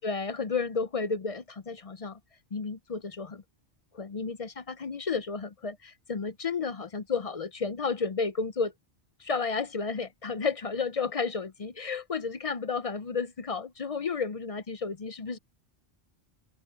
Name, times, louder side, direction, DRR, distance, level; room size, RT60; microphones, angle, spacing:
voice 1, 0.0-2.2 2.5-3.4 3.9-8.7 9.2-15.4, left 5 dB, 40° left, 0.5 m, -32 dB
open air
omnidirectional pair, 1.2 m